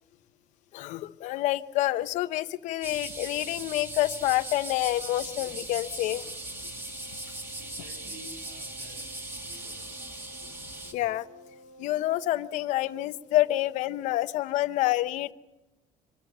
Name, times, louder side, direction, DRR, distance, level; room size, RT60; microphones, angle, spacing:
voice 1, 0.7-6.2 10.9-11.4 11.8-15.3, left 15 dB, 60° left, 14 dB, 0.7 m, -28 dB
sound 1, 2.8-10.9, right 1 dB, 15° right, 1.9 m, -39 dB
Wind instrument woodwind instrument, 5.1-13.3, right 1 dB, 40° right, 2.7 m, -53 dB
voice 2, 6.6-10.2 10.7-10.9, right 1 dB, 90° right, 4 dB, 7.5 m, -53 dB
25.0 x 13.5 x 7.7 m, 1.0 s
cardioid pair, 175°, 14 cm